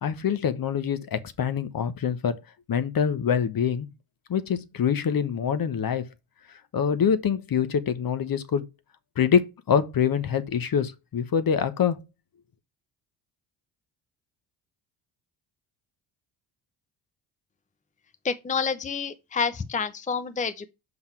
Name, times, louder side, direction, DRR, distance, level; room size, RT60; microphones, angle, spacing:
voice 1, 0.0-2.4 2.7-3.9 4.3-6.1 6.7-8.7 9.2-12.0, left 7 dB, 45° left, 1.1 m, -25 dB
voice 2, 18.2-20.7, left 5 dB, 15° left, 0.7 m, -28 dB
5.9 x 5.6 x 4.5 m
supercardioid pair, 60°, 49 cm